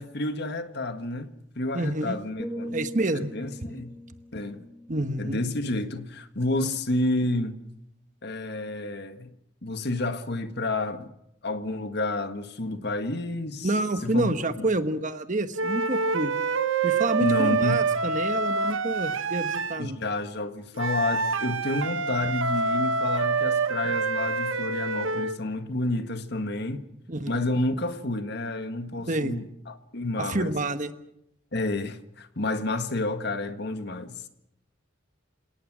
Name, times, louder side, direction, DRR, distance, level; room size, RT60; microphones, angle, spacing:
voice 1, 0.0-2.8 3.1-3.9 4.3-4.6 5.2-7.6 8.2-9.3 9.6-11.1 11.4-13.7 14.0-14.7 17.2-17.8 19.8-26.9 27.3-30.5 31.5-34.2, left 2 dB, 55° left, 1.7 m, -30 dB
voice 2, 1.7-2.2 2.7-3.3 4.9-5.4 13.6-16.3 16.8-20.0 27.1-27.4 29.1-29.4 30.2-30.9, right 2 dB, 40° right, 1.3 m, -28 dB
sound 1, 2.4-6.4 6.7-7.1, equal, 5° right, 1.0 m, -41 dB
sound 2, 15.6-19.9 20.8-25.4, right 4 dB, 80° right, 1.2 m, -26 dB
29.0 x 18.0 x 6.3 m
head